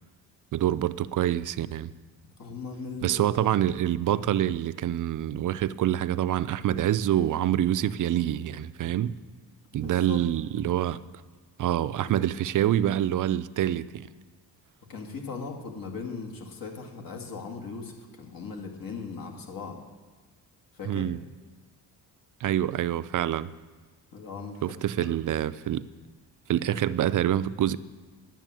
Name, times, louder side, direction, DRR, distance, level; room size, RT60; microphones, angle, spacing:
voice 1, 0.5-1.9 3.0-9.1 9.7-11.0 11.6-14.1 20.9-21.2 22.4-23.5 24.6-25.8 26.5-27.8, right 11 dB, 50° right, 0.5 m, -26 dB
voice 2, 2.4-3.5 9.7-10.2 14.9-19.8 20.7-21.1 24.1-25.1 26.7-26.8, left 4 dB, 60° left, 2.1 m, -39 dB
10.5 x 7.4 x 7.5 m
cardioid pair, 100°, 40 cm